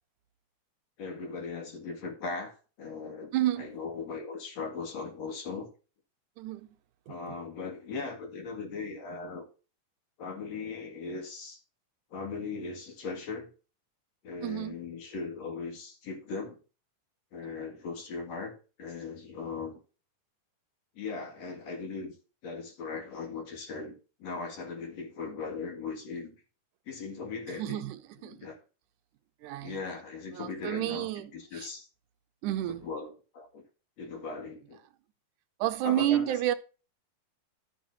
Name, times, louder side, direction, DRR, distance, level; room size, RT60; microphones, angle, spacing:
voice 1, 1.0-3.3 3.6-5.7 7.1-9.4 10.2-11.6 12.1-13.5 14.2-16.6 17.3-19.8 21.0-22.2 22.4-23.9 24.2-26.4 26.9-27.8 28.2-28.6 29.6-31.9 32.7-33.6 34.0-34.8 35.8-36.3, left 4 dB, 60° left, 3.2 m, -39 dB
voice 2, 3.3-3.7 6.4-6.7 7.1-7.4 14.4-14.8 17.5-17.6 27.6-28.5 29.4-29.8 30.4-31.7 32.4-32.8 35.6-36.5, right 13 dB, 80° right, 2.2 m, -31 dB
11.5 x 9.1 x 2.7 m
omnidirectional pair, 3.6 m